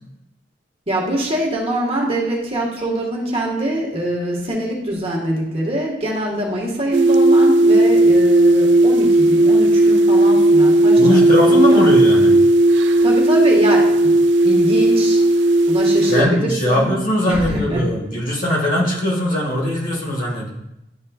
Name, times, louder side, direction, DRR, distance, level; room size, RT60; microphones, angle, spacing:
voice 1, 0.9-11.2 11.5-11.9 13.0-14.1 14.4-15.2 15.7-16.9 17.3-17.8, right 1 dB, 35° right, -3 dB, 1.5 m, -23 dB
sound 1, 6.9-16.2, right 1 dB, 75° right, 0.4 m, -14 dB
voice 2, 11.0-12.4 16.1-20.5, left 1 dB, 50° left, -3 dB, 1.7 m, -20 dB
11.0 x 4.3 x 2.4 m, 0.84 s
head